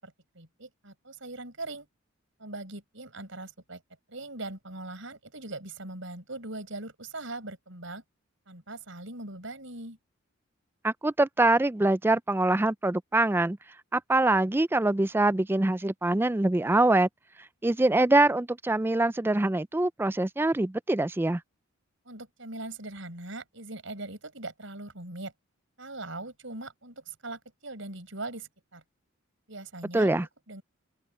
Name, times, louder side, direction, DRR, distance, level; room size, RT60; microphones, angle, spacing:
voice 1, 0.0-1.9 2.4-3.8 4.1-8.0 8.5-10.0 22.0-25.3 25.8-28.8 29.5-30.1 30.5-30.6, right 2 dB, 65° right, 8.0 m, -40 dB
voice 2, 10.8-13.6 13.9-17.1 17.6-21.4 29.9-30.3, right 2 dB, 10° right, 0.4 m, -24 dB
open air
head